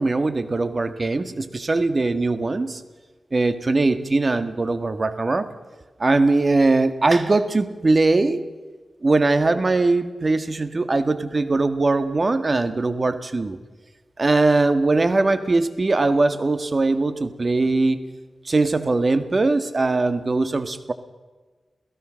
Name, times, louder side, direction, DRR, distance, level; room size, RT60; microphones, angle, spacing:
voice 1, 0.0-2.8 3.3-5.5 6.0-8.4 9.0-13.6 14.2-18.0 18.5-20.9, right 3 dB, 45° right, 11 dB, 1.8 m, -21 dB
28.5 x 17.0 x 6.4 m, 1.3 s
cardioid pair, 55°, 0 cm